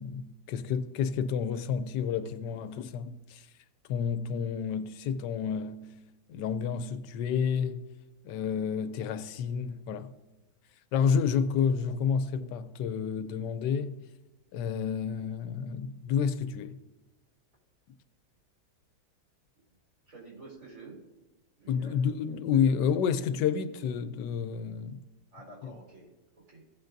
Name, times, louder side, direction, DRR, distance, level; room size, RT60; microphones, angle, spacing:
voice 1, 0.0-3.4 3.9-5.8 6.3-7.8 8.2-10.1 10.9-13.9 14.5-16.8 21.7-25.0 25.6-25.7, left 7 dB, 85° left, 1.2 m, -30 dB
voice 2, 20.1-21.0 21.6-22.0 25.3-26.6, right 3 dB, 50° right, 4.5 m, -49 dB
15.5 x 8.8 x 2.6 m
omnidirectional pair, 1.8 m